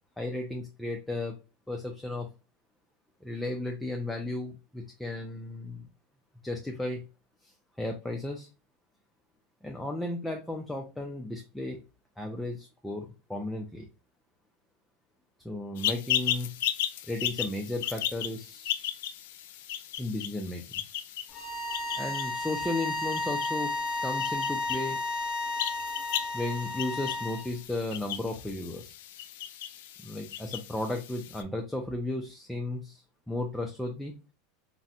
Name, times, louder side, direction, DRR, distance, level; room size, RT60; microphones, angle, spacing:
voice 1, 0.2-1.4 1.7-2.3 3.2-5.9 6.4-7.0 7.4-7.5 7.8-8.5 9.6-11.8 12.2-13.9 15.4-16.5 17.1-19.0 20.0-20.6 22.0-23.7 24.0-25.0 25.6-25.7 26.3-28.9 30.0-34.1, left 2 dB, 5° left, 1 dB, 0.4 m, -34 dB
sound 1, 15.8-31.4, left 11 dB, 75° left, 0.3 m, -36 dB
sound 2, 21.3-27.4, left 2 dB, 20° left, 0.8 m, -33 dB
4.0 x 2.1 x 2.5 m, 0.29 s
supercardioid pair, 155°, 0 cm